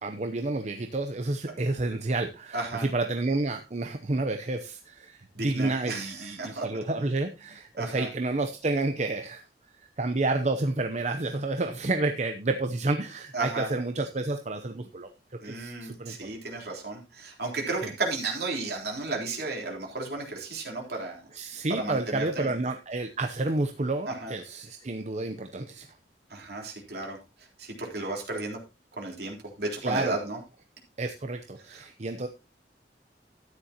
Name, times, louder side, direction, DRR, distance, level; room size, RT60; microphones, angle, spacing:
voice 1, 0.0-9.4 9.8-16.2 17.8-17.9 21.3-25.9 29.8-30.2 31.0-32.3, right 2 dB, 40° right, 7 dB, 0.7 m, -30 dB
voice 2, 2.5-2.9 5.3-6.7 7.8-8.1 13.3-13.7 15.4-21.2 21.7-22.6 24.1-24.3 26.3-27.2 27.6-28.6 29.0-30.4 31.7-31.8, right 3 dB, 60° right, 0 dB, 3.7 m, -33 dB
13.0 x 9.9 x 2.9 m, 0.27 s
head